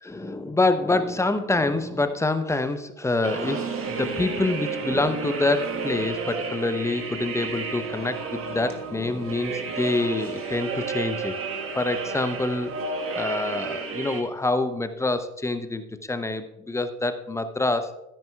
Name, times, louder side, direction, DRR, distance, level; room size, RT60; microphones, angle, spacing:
voice 1, 0.0-3.6 3.9-11.3 11.7-12.7 13.2-15.8 16.1-17.9, left 2 dB, 5° left, 9 dB, 0.7 m, -26 dB
sound 1, 3.2-14.2, right 4 dB, 30° right, 1.6 m, -32 dB
13.0 x 10.0 x 2.4 m, 0.91 s
hypercardioid pair, 80°, 42 cm